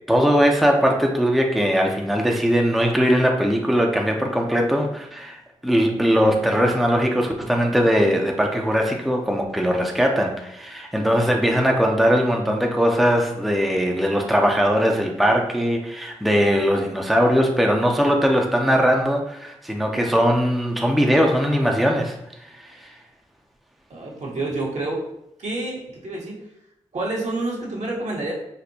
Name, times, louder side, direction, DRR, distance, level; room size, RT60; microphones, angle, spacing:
voice 1, 0.1-22.1 22.5-22.9, equal, ahead, 1 dB, 0.6 m, -20 dB
voice 2, 23.9-25.0 25.4-26.4 26.9-28.3, right 2 dB, 65° right, -4 dB, 1.2 m, -28 dB
4.3 x 2.1 x 2.7 m, 0.81 s
supercardioid pair, 40°, 13 cm